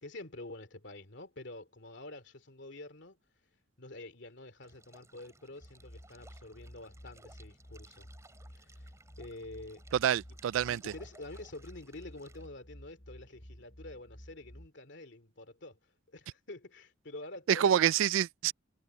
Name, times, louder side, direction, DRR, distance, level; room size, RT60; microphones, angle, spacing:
voice 1, 0.0-3.2 3.8-8.1 8.5-8.9 9.2-9.8 10.7-15.8 16.1-17.8, left 2 dB, 65° left, 2.8 m, -47 dB
sound 1, 4.6-12.5, right 2 dB, 15° right, 5.2 m, -61 dB
sound 2, 5.6-14.7, equal, 35° left, 5.7 m, -53 dB
voice 2, 10.0-10.8 17.5-18.5, right 10 dB, 80° right, 0.3 m, -27 dB
head